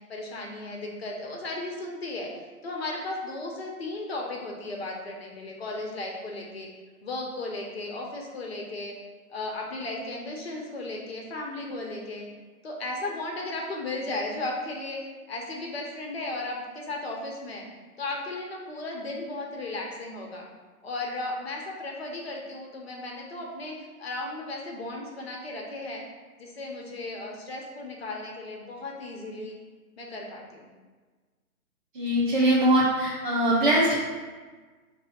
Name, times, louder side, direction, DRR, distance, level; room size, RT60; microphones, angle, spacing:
voice 1, 0.1-2.3 2.6-6.7 7.0-9.0 9.3-12.3 12.6-15.0 15.3-17.6 18.0-20.5 20.8-26.0 26.4-29.5 30.0-30.7, left 2 dB, 40° left, 0 dB, 0.8 m, -35 dB
voice 2, 31.9-33.9, right 1 dB, 35° right, -7 dB, 0.6 m, -22 dB
4.6 x 2.7 x 4.1 m, 1.4 s
hypercardioid pair, 160°, 46 cm